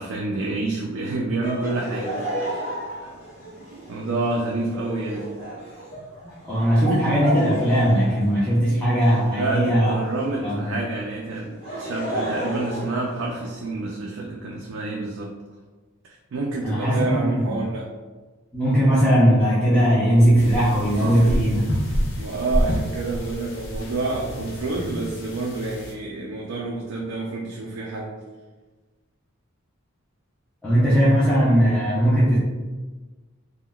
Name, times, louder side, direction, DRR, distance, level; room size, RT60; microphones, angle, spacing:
voice 1, 0.0-2.4 3.9-5.3 9.3-11.5 11.8-15.3 16.3-17.9 20.9-28.1, right 2 dB, 65° right, -2 dB, 0.4 m, -28 dB
Laughter, 1.4-10.5 11.3-13.7, right 1 dB, 30° left, 1.1 m, -33 dB
voice 2, 6.5-9.9 10.4-10.8 16.6-17.6 18.5-21.6 24.9-25.0 30.6-32.4, equal, 5° left, -11 dB, 0.5 m, -19 dB
sound 1, 20.4-25.9, equal, 60° left, 0.6 m, -28 dB
3.6 x 2.1 x 2.2 m, 1.3 s
head